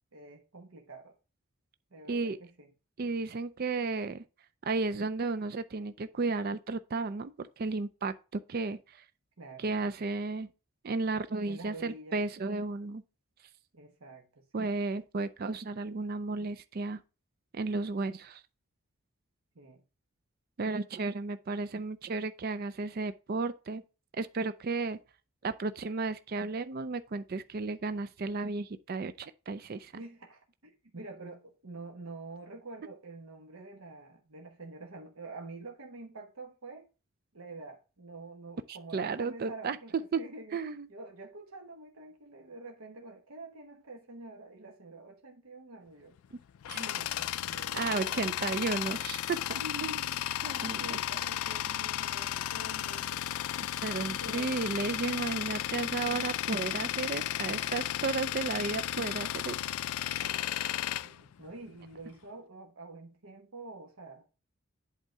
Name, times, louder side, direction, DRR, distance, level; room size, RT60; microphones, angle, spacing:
voice 1, 0.1-1.1 1.9-2.7 9.4-9.7 11.5-12.2 13.7-14.7 19.5-19.8 29.9-36.9 37.3-40.6 40.9-46.1 46.7-48.5 49.6-50.2 50.5-53.2 54.1-54.7 60.2-60.6 61.0-64.3, right 2 dB, 75° right, 1.1 m, -47 dB
voice 2, 3.0-4.2 4.7-9.0 9.6-10.5 10.8-13.0 14.5-17.0 17.5-18.4 20.6-23.8 24.1-25.0 25.4-29.9 38.7-39.8 40.1-40.2 40.5-40.9 46.3-46.4 46.7-46.8 47.7-50.0 50.4-51.0 53.6-59.6, right 3 dB, 45° right, 0.4 m, -33 dB
Tools, 46.2-62.0, left 12 dB, 75° left, 0.3 m, -34 dB
8.2 x 3.8 x 4.4 m
head